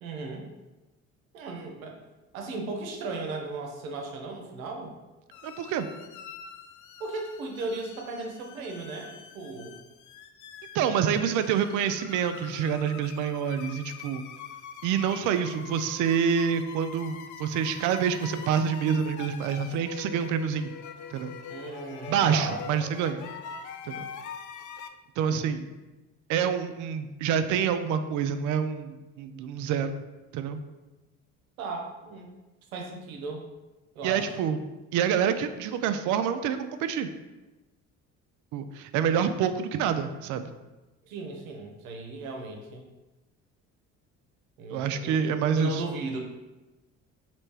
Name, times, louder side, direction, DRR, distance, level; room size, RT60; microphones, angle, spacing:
voice 1, 0.0-0.4 1.3-2.0 2.3-4.9 7.0-9.8 21.5-22.6 31.6-32.3 32.7-33.4 33.9-34.3 41.0-42.8 44.6-45.1 45.6-46.2, right 3 dB, 85° right, 2 dB, 0.7 m, -36 dB
sound 1, 5.3-24.9, left 7 dB, 50° left, 0.5 m, -44 dB
voice 2, 5.4-5.9 10.7-14.2 14.8-20.7 21.1-21.3 22.1-23.3 23.9-24.1 25.2-25.7 26.3-30.0 30.3-30.6 34.0-34.6 34.9-37.1 38.5-40.5 44.7-45.8, right 7 dB, 50° right, 10 dB, 0.4 m, -27 dB
3.2 x 3.0 x 4.6 m, 1.1 s
hypercardioid pair, 55°, 40 cm